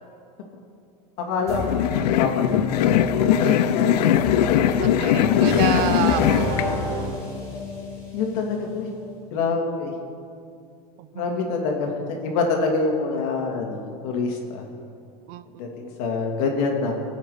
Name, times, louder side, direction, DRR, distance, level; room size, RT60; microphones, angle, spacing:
voice 1, 1.2-1.7 2.0-2.4 2.8-3.0 3.5-4.9 5.2-5.4 8.1-8.9 9.3-9.9 11.1-14.7 15.6-16.9, left 4 dB, 65° left, 1 dB, 2.9 m, -26 dB
sound 1, 1.5-6.7, left 10 dB, 85° left, 0.7 m, -20 dB
sound 2, 1.5-9.4, left 2 dB, 15° left, 3.8 m, -31 dB
voice 2, 4.8-7.2 11.0-11.4 15.3-15.4, right 13 dB, 50° right, 14 dB, 0.6 m, -29 dB
22.0 x 8.4 x 5.1 m, 2.5 s
supercardioid pair, 140°, 20 cm